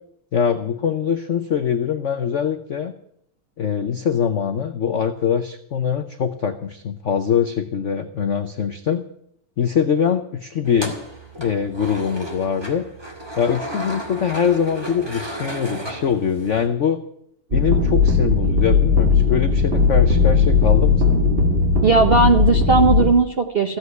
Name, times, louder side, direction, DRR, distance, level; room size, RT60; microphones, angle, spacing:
voice 1, 0.3-2.9 3.6-9.0 9.6-11.0 11.4-12.8 13.4-17.0 17.5-21.2, left 7 dB, 70° left, 9 dB, 0.7 m, -23 dB
sound 1, 10.6-16.7, right 1 dB, 10° right, 2.0 m, -33 dB
sound 2, 17.5-23.1, left 4 dB, 30° right, 1.8 m, -17 dB
voice 2, 21.8-23.8, right 3 dB, 50° right, 5 dB, 0.7 m, -17 dB
15.0 x 8.2 x 9.5 m, 0.71 s
omnidirectional pair, 2.4 m